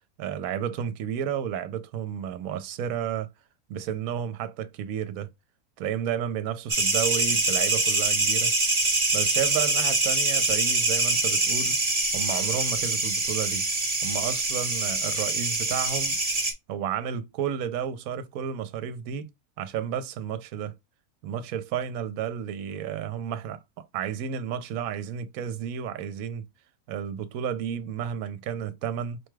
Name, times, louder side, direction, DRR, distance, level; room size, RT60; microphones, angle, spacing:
voice 1, 0.2-3.3 3.7-5.3 5.8-8.5 9.1-11.8 12.1-13.7 14.0-16.2 16.7-19.3 19.6-20.8 21.2-26.4 26.9-29.2, right 9 dB, 70° right, 1.0 m, -32 dB
sound 1, 6.7-16.5, right 3 dB, 30° right, 0.9 m, -25 dB
4.8 x 2.2 x 3.1 m
omnidirectional pair, 1.6 m